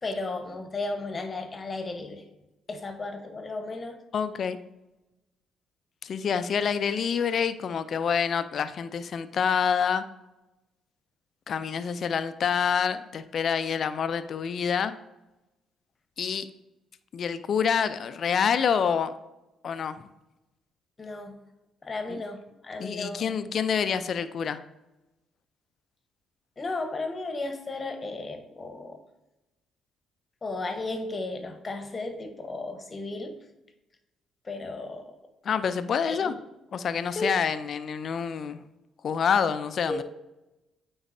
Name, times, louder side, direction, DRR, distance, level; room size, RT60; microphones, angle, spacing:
voice 1, 0.0-2.3 2.7-4.0 21.0-21.4 21.8-23.3 26.6-29.0 30.4-33.4 34.4-35.1 36.0-36.4 37.1-37.3 39.9-40.0, left 2 dB, 35° left, 6 dB, 1.1 m, -34 dB
voice 2, 4.1-4.6 6.0-10.0 11.5-14.9 16.2-16.5 17.1-19.1 19.6-20.0 22.1-22.2 22.8-24.6 35.4-36.3 36.7-38.6 39.0-40.0, left 7 dB, 55° left, 12 dB, 0.4 m, -27 dB
8.9 x 3.9 x 2.7 m, 0.97 s
hypercardioid pair, 55°, 0 cm